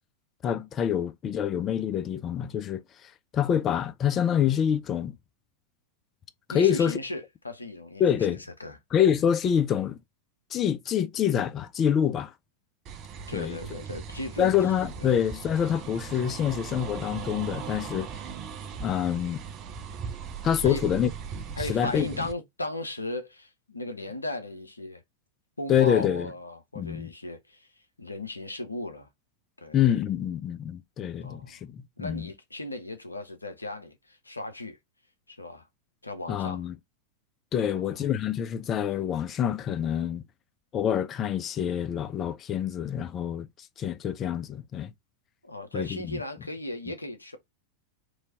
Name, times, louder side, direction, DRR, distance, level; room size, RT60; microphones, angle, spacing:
voice 1, 0.4-2.8 3.3-5.2 6.5-7.0 8.0-8.4 8.9-10.0 10.5-12.3 13.3-13.6 14.4-18.1 18.8-19.4 20.4-21.1 21.7-22.1 25.7-26.3 26.8-27.1 29.7-32.3 36.3-36.8 37.5-40.2 40.7-43.5 43.8-44.9 45.7-46.2, left 9 dB, 30° left, 0.4 m, -26 dB
voice 2, 6.5-8.8 13.3-14.5 15.0-15.1 20.6-20.8 21.6-25.0 25.6-27.7 28.0-29.1 29.6-29.8 31.2-31.6 32.0-34.8 35.3-35.7 36.0-36.7 37.6-38.0 45.4-47.4, left 1 dB, 80° left, 0.7 m, -36 dB
sound 1, 12.9-22.3, right 6 dB, 35° right, 0.6 m, -39 dB
3.1 x 2.8 x 3.9 m
figure-of-eight pair, 90°, 0 cm